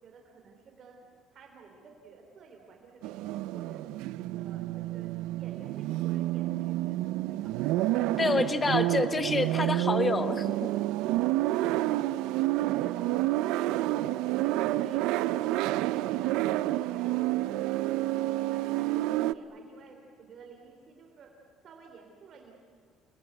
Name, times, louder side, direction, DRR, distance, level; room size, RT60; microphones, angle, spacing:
voice 1, 0.0-3.9 4.1-8.6 8.9-9.3 12.3-13.1 13.5-17.2 17.9-21.3 21.6-22.5, right 5 dB, 40° right, 2 dB, 3.2 m, -53 dB
sound 1, 3.0-19.3, right 16 dB, 80° right, 0.6 m, -29 dB
voice 2, 8.2-10.7, left 3 dB, 15° left, 11 dB, 1.1 m, -28 dB
30.0 x 20.5 x 9.3 m, 2.1 s
cardioid pair, 160°, 0 cm